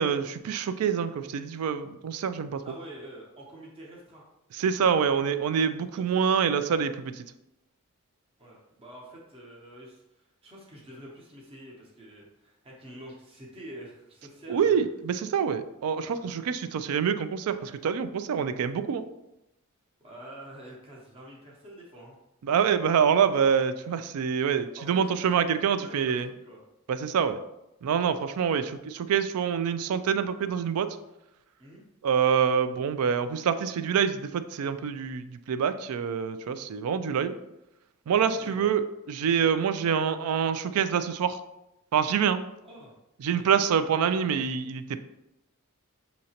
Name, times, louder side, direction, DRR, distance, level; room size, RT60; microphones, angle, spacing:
voice 1, 0.0-2.6 4.5-7.2 14.5-19.1 22.4-26.3 26.9-27.4 27.8-31.0 32.0-37.4 38.1-38.8 39.1-41.4 41.9-42.4 43.2-45.0, right 7 dB, 85° right, 11 dB, 0.3 m, -26 dB
voice 2, 2.6-4.2 5.9-6.3 8.4-14.8 20.0-22.2 24.8-25.4 25.7-26.6 31.6-31.8 38.2-38.7 42.6-42.9 43.3-43.5, right 1 dB, 25° right, -4 dB, 0.8 m, -46 dB
6.3 x 2.9 x 2.8 m, 0.91 s
head